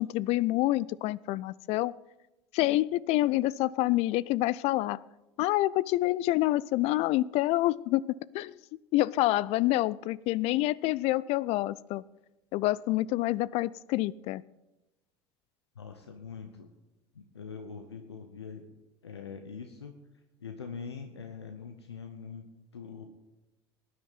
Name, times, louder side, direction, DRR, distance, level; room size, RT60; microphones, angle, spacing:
voice 1, 0.0-1.9 2.5-5.0 5.4-8.6 8.9-12.0 12.5-14.4, left 17 dB, 50° left, 23 dB, 0.4 m, -27 dB
voice 2, 15.7-16.7 17.1-18.7 19.0-19.9 20.4-22.5 22.7-23.0, left 6 dB, 85° left, 6 dB, 0.9 m, -43 dB
19.0 x 9.6 x 4.1 m, 1.0 s
hypercardioid pair, 70°, 13 cm